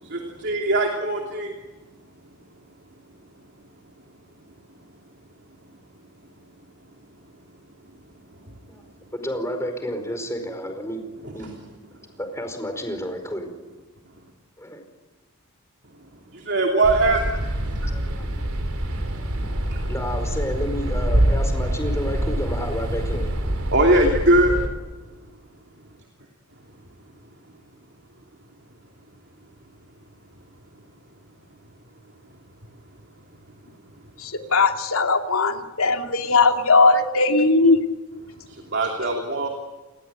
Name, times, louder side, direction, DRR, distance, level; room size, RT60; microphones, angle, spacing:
voice 1, 0.0-1.5 11.2-11.5 16.3-17.3 17.8-17.9 19.7-19.8 23.7-24.5 38.4-39.5, right 2 dB, 50° right, 2 dB, 3.0 m, -21 dB
voice 2, 9.1-11.0 11.3-11.5 12.2-13.5 14.6-14.8 17.9-18.4 19.9-23.4, equal, 15° left, 6 dB, 4.8 m, -30 dB
sound 1, 16.8-24.7, right 1 dB, 70° right, 4.2 m, -25 dB
voice 3, 34.2-37.8, left 3 dB, 65° left, 5 dB, 2.8 m, -19 dB
29.0 x 21.0 x 9.0 m, 1.2 s
head